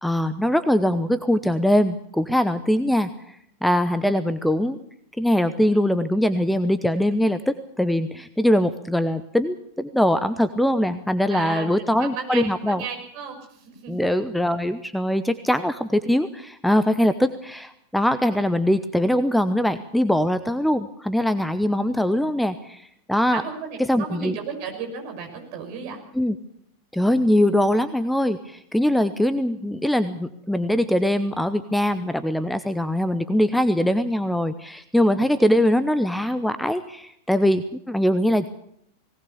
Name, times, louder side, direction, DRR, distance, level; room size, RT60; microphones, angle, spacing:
voice 1, 0.0-4.8 5.2-12.8 13.9-23.4 23.8-24.4 26.1-26.4 26.9-38.5, left 1 dB, ahead, 12 dB, 0.9 m, -22 dB
voice 2, 11.3-11.7 12.0-13.9 23.3-26.0, right 5 dB, 45° right, 4 dB, 6.2 m, -34 dB
20.5 x 19.0 x 7.0 m, 0.73 s
figure-of-eight pair, 90°, 0 cm